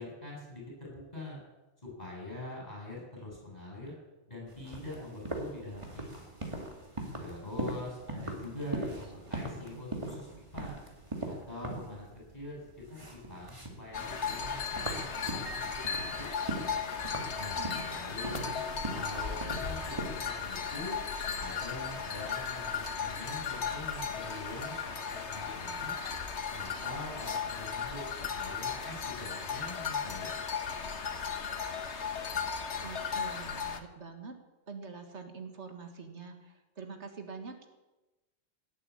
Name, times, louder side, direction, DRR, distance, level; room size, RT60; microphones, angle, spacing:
voice 1, 0.0-1.4 1.8-3.9 4.3-6.2 7.2-10.3 10.5-10.8 11.2-12.1 12.3-14.6 15.0-15.6 16.2-16.3 17.3-18.5 18.9-21.0 21.4-25.9 26.5-30.4, left 1 dB, 35° left, -2 dB, 8.3 m, -44 dB
sound 1, 4.5-20.1, right 1 dB, 25° right, 2.5 m, -41 dB
voice 2, 8.1-8.9 9.6-9.9 10.1-10.4 17.6-18.8 32.8-34.4 34.7-37.7, right 5 dB, 75° right, 5 dB, 2.1 m, -46 dB
sound 2, 13.9-33.8, left 6 dB, 75° left, 1.5 m, -36 dB
Piano, 15.5-16.9, right 4 dB, 50° right, 0.8 m, -49 dB
18.0 x 9.0 x 8.7 m, 1.1 s
omnidirectional pair, 1.2 m